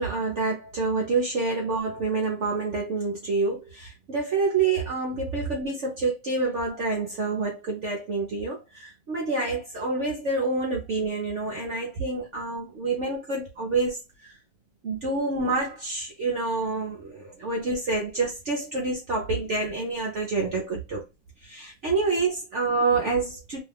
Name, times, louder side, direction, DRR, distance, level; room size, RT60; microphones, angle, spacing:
voice 1, 0.0-14.4 14.8-21.0 21.4-23.6, right 3 dB, 55° right, 0.8 m, -27 dB
3.0 x 2.3 x 3.3 m
omnidirectional pair, 1.9 m